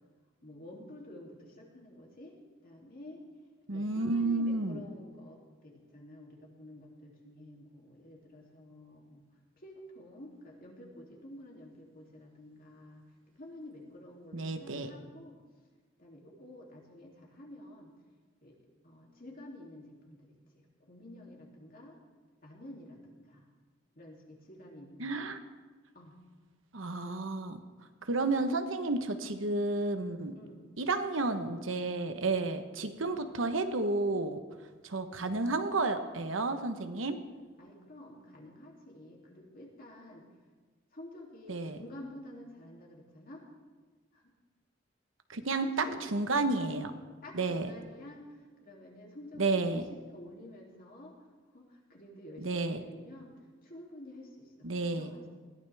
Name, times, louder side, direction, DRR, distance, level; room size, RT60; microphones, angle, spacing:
voice 1, 0.4-2.4 2.6-3.2 3.7-9.2 9.6-13.1 13.3-15.4 16.0-17.9 18.4-18.6 18.8-22.0 22.4-23.5 23.9-25.3 25.9-26.1 30.3-30.8 37.6-40.2 40.9-43.4 44.1-44.3 45.6-46.0 47.2-51.1 51.5-53.3 53.6-54.7 54.9-55.3, left 1 dB, 50° left, -1 dB, 2.9 m, -50 dB
voice 2, 3.7-4.8 14.3-14.9 25.0-25.4 26.7-27.6 28.1-30.3 30.8-34.4 34.8-37.2 41.5-41.8 45.3-45.7 46.1-46.9 47.3-47.7 49.4-49.9 52.4-52.8 54.6-55.1, right 3 dB, 80° right, 8 dB, 1.1 m, -31 dB
20.5 x 15.0 x 3.5 m, 1.4 s
head